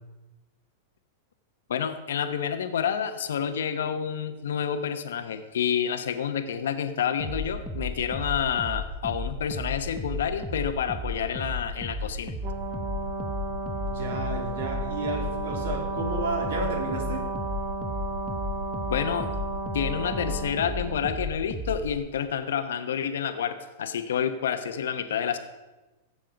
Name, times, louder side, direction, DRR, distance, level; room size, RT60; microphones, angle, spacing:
voice 1, 1.7-12.3 18.9-19.3 19.7-25.4, left 8 dB, 90° left, 9 dB, 0.9 m, -29 dB
sound 1, 7.2-22.0, left 1 dB, 5° left, 0.9 m, -34 dB
Brass instrument, 12.4-21.1, right 2 dB, 40° right, 1.3 m, -34 dB
voice 2, 13.9-17.3, right 2 dB, 75° right, 2 dB, 3.1 m, -32 dB
15.0 x 7.5 x 5.1 m, 1.1 s
supercardioid pair, 150°, 0 cm